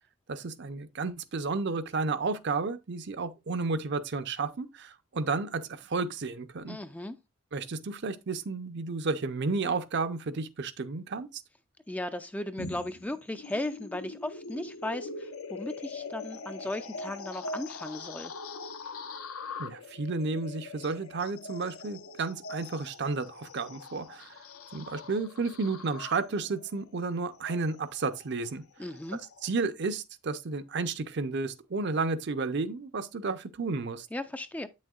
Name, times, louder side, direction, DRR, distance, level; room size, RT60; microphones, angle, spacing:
voice 1, 0.3-6.8 7.5-11.4 19.6-24.4 24.7-28.6 29.4-34.1, right 4 dB, 55° right, 0.6 m, -32 dB
voice 2, 6.6-7.2 11.9-18.3 28.8-29.2 34.1-34.7, left 1 dB, 5° left, 0.3 m, -36 dB
sound 1, 12.6-29.5, left 3 dB, 80° left, 0.7 m, -43 dB
8.5 x 6.4 x 2.4 m
head